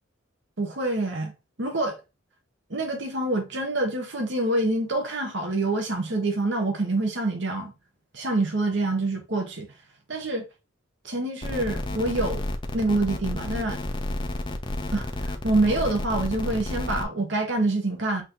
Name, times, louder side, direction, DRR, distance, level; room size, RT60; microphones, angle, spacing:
voice 1, 0.6-1.3 1.6-2.0 2.7-7.7 8.1-9.7 10.1-10.4 11.0-12.5 12.7-13.8 14.9-18.2, right 2 dB, 60° right, 1.1 m, -26 dB
sound 1, 11.4-17.0, left 1 dB, 25° left, 0.5 m, -31 dB
5.7 x 2.8 x 2.9 m
head